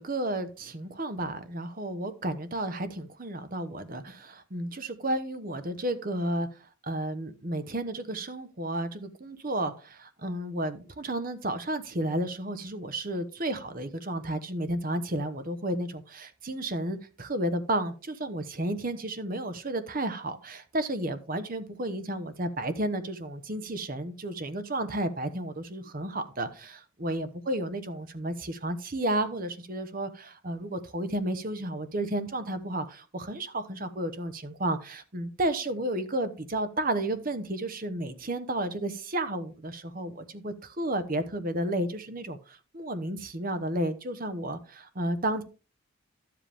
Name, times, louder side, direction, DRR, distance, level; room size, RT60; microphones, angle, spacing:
voice 1, 0.0-6.5 6.8-45.4, right 1 dB, 40° right, 10 dB, 1.0 m, -32 dB
11.5 x 7.7 x 3.5 m, 0.34 s
head